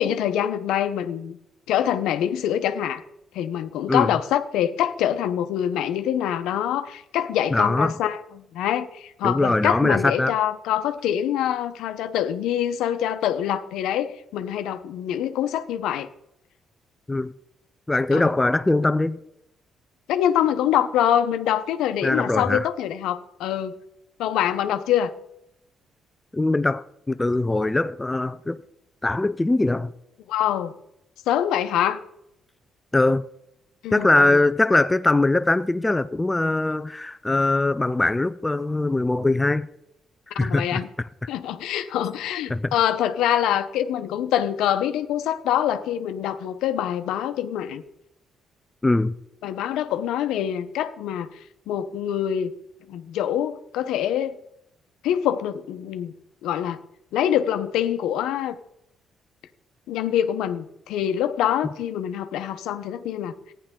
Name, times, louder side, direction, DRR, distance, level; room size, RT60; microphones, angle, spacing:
voice 1, 0.0-1.4 1.7-3.0 3.3-16.1 18.1-18.3 20.1-23.8 24.2-25.1 30.3-30.7 31.3-32.0 33.8-34.4 40.4-40.9 41.3-47.8 49.4-51.3 51.7-52.5 52.9-54.4 55.0-56.1 56.4-56.8 57.1-58.6 59.9-63.3, left 10 dB, 90° left, 0.8 m, -25 dB
voice 2, 7.5-8.0 9.2-10.4 17.1-17.3 17.9-19.2 22.0-22.7 26.3-28.6 29.0-29.9 32.9-33.3 33.9-39.7 40.3-41.1 42.5-42.7 48.8-49.1 61.6-61.7, left 2 dB, 15° left, 0.4 m, -22 dB
15.0 x 10.0 x 3.7 m
cardioid pair, 90°, 0 cm